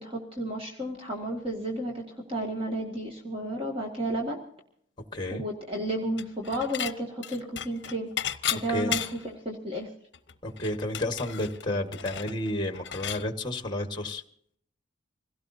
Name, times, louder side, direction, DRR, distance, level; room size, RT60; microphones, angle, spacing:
voice 1, 0.0-2.0 2.3-4.4 5.3-8.1 8.5-9.9, right 1 dB, 30° right, -1 dB, 2.0 m, -32 dB
voice 2, 5.1-5.4 8.7-8.9 10.4-14.2, left 1 dB, 25° left, 6 dB, 1.5 m, -31 dB
Dishes pots and pans / Chink clink, 6.2-6.9 7.2-9.3 9.8-9.9 10.1-13.2, left 10 dB, 60° left, 0.7 m, -34 dB
26.5 x 17.0 x 2.7 m, 0.67 s
head